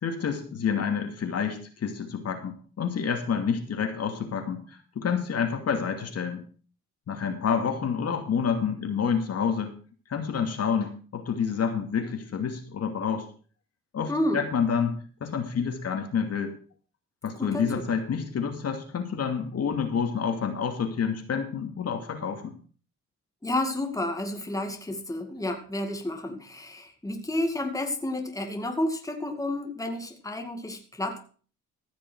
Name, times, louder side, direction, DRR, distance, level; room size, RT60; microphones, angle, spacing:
voice 1, 0.0-6.4 7.1-9.7 10.1-13.3 13.9-14.9 15.2-16.5 17.2-22.5, left 6 dB, 55° left, 5 dB, 2.6 m, -28 dB
voice 2, 14.1-14.4 17.4-17.6 23.4-31.2, left 1 dB, 10° left, 4 dB, 2.2 m, -30 dB
15.0 x 6.1 x 6.2 m, 0.40 s
cardioid pair, 90°, 30 cm